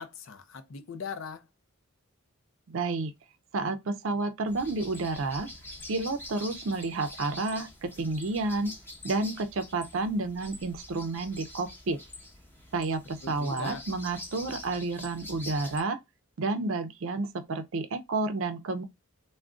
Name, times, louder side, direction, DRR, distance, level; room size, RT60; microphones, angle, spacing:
voice 1, 0.0-1.5 13.2-13.9, left 5 dB, 60° left, 0.5 m, -40 dB
voice 2, 2.7-3.1 3.5-5.5 5.9-8.7 9.0-12.0 12.7-16.0 16.4-18.8, right 3 dB, 60° right, 0.4 m, -30 dB
sound 1, 4.5-15.8, left 1 dB, 10° left, 0.7 m, -45 dB
2.4 x 2.1 x 3.6 m
head